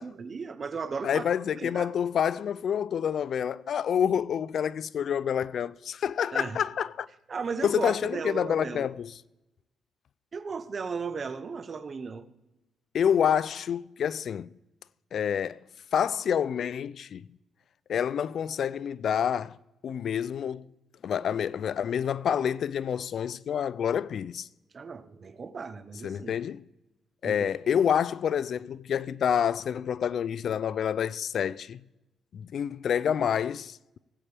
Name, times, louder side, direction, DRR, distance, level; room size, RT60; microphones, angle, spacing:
voice 1, 0.0-1.2 1.5-1.9 6.3-6.6 7.3-8.9 10.3-12.3 24.7-26.4 27.2-27.5, right 5 dB, 40° right, 0.8 m, -36 dB
voice 2, 1.0-7.1 7.6-9.1 12.9-14.5 15.1-15.6 15.9-17.2 17.9-19.6 19.8-20.7 21.0-24.5 26.0-26.7 27.2-31.8 32.3-34.0, left 8 dB, 60° left, 0.3 m, -28 dB
18.5 x 8.7 x 3.4 m
cardioid pair, 90°, 0 cm